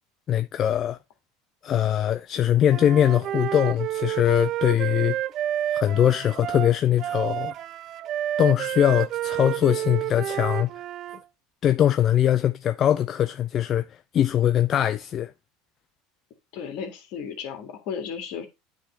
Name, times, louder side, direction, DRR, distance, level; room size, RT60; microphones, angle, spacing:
voice 1, 0.3-1.0 1.6-5.2 5.7-7.5 8.4-10.7 11.6-15.3, left 10 dB, 40° left, 0.4 m, -22 dB
Wind instrument woodwind instrument, 2.7-11.2, right 12 dB, 50° right, 0.4 m, -30 dB
voice 2, 16.5-18.5, left 7 dB, 65° left, 1.9 m, -34 dB
8.9 x 3.4 x 3.9 m
hypercardioid pair, 95°, 0 cm